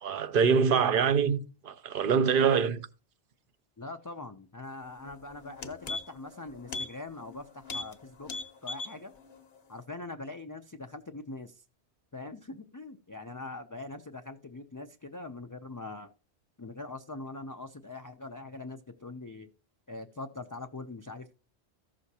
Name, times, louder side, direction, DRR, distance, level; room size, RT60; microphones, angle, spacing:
voice 1, 0.0-2.9, right 6 dB, 55° right, 0.8 m, -25 dB
voice 2, 3.8-8.3 8.6-9.1 9.7-11.6 12.1-16.1 16.6-19.5 19.9-21.3, left 2 dB, 30° left, 0.4 m, -42 dB
sound 1, 5.0-5.1 5.4-6.3 6.7-6.9 7.2-7.4 7.6-7.9 8.2-9.0 9.3-9.4, left 3 dB, 60° left, 1.1 m, -37 dB
14.5 x 6.3 x 2.8 m
omnidirectional pair, 1.1 m